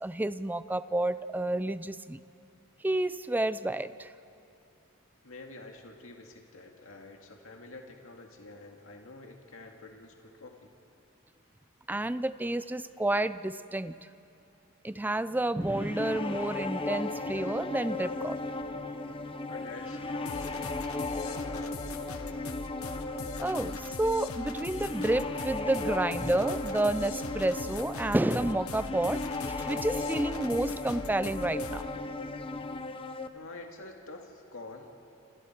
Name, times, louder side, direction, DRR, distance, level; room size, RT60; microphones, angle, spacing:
voice 1, 0.0-2.2 2.8-4.1 11.9-14.0 14.8-18.4 22.1-22.2 23.4-31.8, right 1 dB, 10° right, 14 dB, 0.4 m, -30 dB
voice 2, 5.2-10.7 19.5-22.3 33.3-35.0, left 2 dB, 70° left, 2 dB, 2.2 m, -48 dB
sound 1, 15.6-33.3, left 2 dB, 25° left, 0.9 m, -36 dB
sound 2, 20.3-32.0, left 3 dB, 85° left, 1.2 m, -42 dB
28.5 x 27.5 x 4.6 m, 2.9 s
head